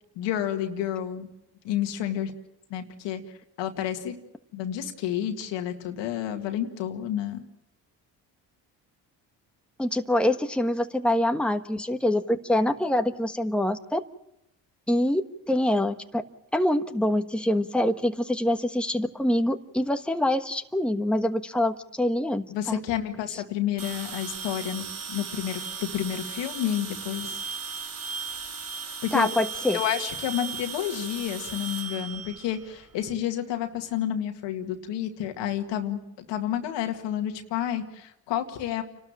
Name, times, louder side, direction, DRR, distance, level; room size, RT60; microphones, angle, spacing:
voice 1, 0.2-1.3 1.6-2.3 2.7-4.2 4.5-7.4 22.5-27.4 29.0-29.3 29.7-38.8, left 10 dB, 85° left, 6 dB, 2.0 m, -30 dB
voice 2, 9.8-14.0 14.9-16.2 16.5-22.8 29.1-29.8, left 1 dB, ahead, 6 dB, 1.3 m, -25 dB
sound 1, 23.8-33.0, right 5 dB, 50° right, 2.9 m, -36 dB
28.5 x 12.5 x 9.0 m, 0.84 s
supercardioid pair, 65°, 43 cm